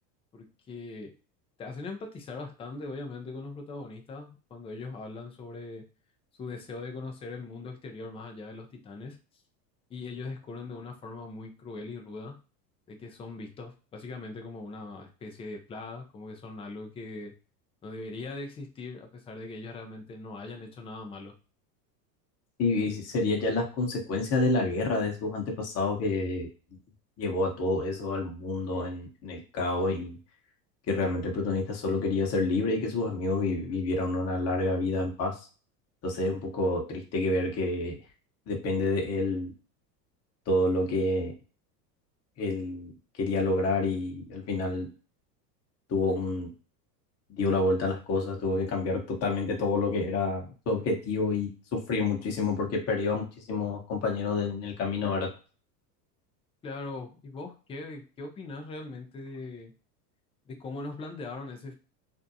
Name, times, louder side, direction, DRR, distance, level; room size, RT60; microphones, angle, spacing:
voice 1, 0.3-1.1 1.6-5.8 6.4-9.2 9.9-12.3 12.9-17.3 17.8-21.3 56.6-59.7 60.5-61.7, left 3 dB, 15° left, 3 dB, 0.3 m, -40 dB
voice 2, 22.6-26.5 27.2-30.2 30.9-35.5 36.0-38.0 38.5-39.5 40.5-41.3 42.4-42.9 43.2-44.9 45.9-46.5 47.3-55.3, left 2 dB, 30° left, 1 dB, 0.8 m, -28 dB
2.6 x 2.0 x 2.6 m, 0.35 s
hypercardioid pair, 90°, 50 cm